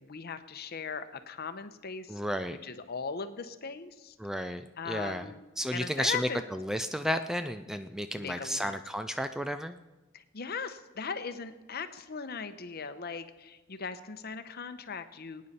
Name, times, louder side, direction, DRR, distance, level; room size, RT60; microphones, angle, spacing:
voice 1, 0.0-2.2 2.6-4.1 4.8-5.4 5.7-6.4 8.2-8.7 10.1-15.5, left 5 dB, 50° left, 10 dB, 0.8 m, -39 dB
voice 2, 2.1-2.6 4.2-5.3 5.6-9.8, equal, 5° right, 10 dB, 0.4 m, -33 dB
20.5 x 9.5 x 4.2 m, 1.2 s
head